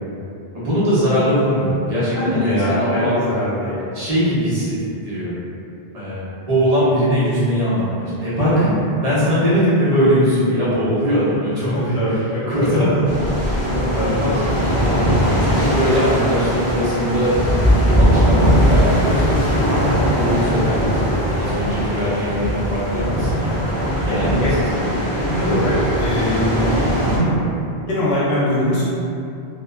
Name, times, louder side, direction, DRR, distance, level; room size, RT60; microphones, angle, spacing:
voice 1, 0.5-3.2 3.9-5.3 5.9-8.7 9.0-12.0 12.5-13.1 13.4-13.5 14.0-14.7 15.4-21.0 21.4-23.6 24.0-24.5 24.8-24.9, equal, 40° right, -11 dB, 0.8 m, -21 dB
voice 2, 2.2-3.8 8.4-8.7 9.1-9.3 11.7-12.7 13.9-14.2 24.1-24.6 25.2-26.7 27.1-27.4 27.9-28.8, equal, 75° left, -10 dB, 1.0 m, -22 dB
sound 1, 13.1-27.2, equal, 25° left, 0.4 m, -19 dB
2.8 x 2.1 x 2.3 m, 2.6 s
omnidirectional pair, 1.1 m